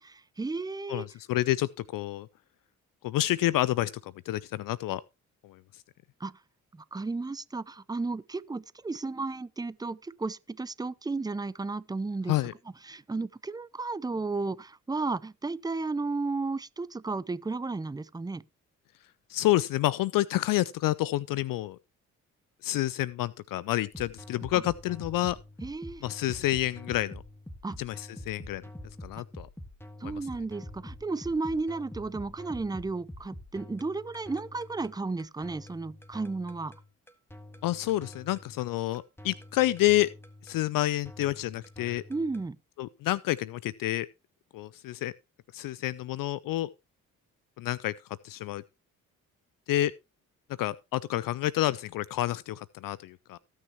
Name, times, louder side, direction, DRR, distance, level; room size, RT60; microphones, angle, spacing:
voice 1, 0.1-1.1 6.2-6.3 6.7-12.3 12.9-18.4 24.5-24.6 25.6-26.0 27.6-27.8 30.0-36.7 42.1-42.6, right 3 dB, 10° right, 0.6 m, -33 dB
voice 2, 0.9-2.3 3.0-5.0 5.4-5.8 12.3-12.5 19.3-21.8 22.6-25.4 26.0-27.2 27.8-28.6 29.0-29.5 30.0-30.2 37.6-40.1 40.4-42.0 42.8-44.1 44.5-45.1 45.5-46.7 47.6-47.9 48.2-48.6 49.7-49.9 50.6-53.4, left 15 dB, 60° left, 0.5 m, -29 dB
sound 1, 23.9-42.5, left 1 dB, 5° left, 1.7 m, -46 dB
19.0 x 6.4 x 2.9 m
hypercardioid pair, 45°, 38 cm